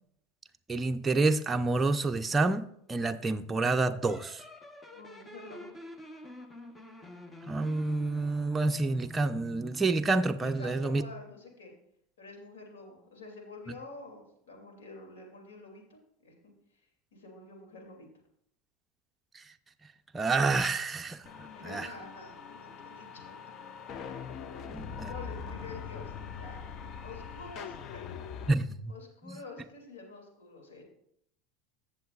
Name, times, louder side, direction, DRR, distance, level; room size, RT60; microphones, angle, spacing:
voice 1, 0.7-4.4 7.5-11.0 19.3-19.4 20.1-21.3 21.7-21.9 24.7-25.1 28.5-28.9 29.3-29.4, right 3 dB, 20° right, 0.5 m, -28 dB
sound 1, 4.1-10.1, equal, 15° left, 1.0 m, -47 dB
voice 2, 4.9-5.7 10.4-11.7 12.2-18.1 21.5-23.4 24.5-28.1 28.9-30.8, left 3 dB, 85° left, 2.5 m, -48 dB
sound 2, 21.3-28.5, left 6 dB, 45° left, 0.6 m, -42 dB
15.5 x 7.1 x 2.4 m
hypercardioid pair, 90°, 0 cm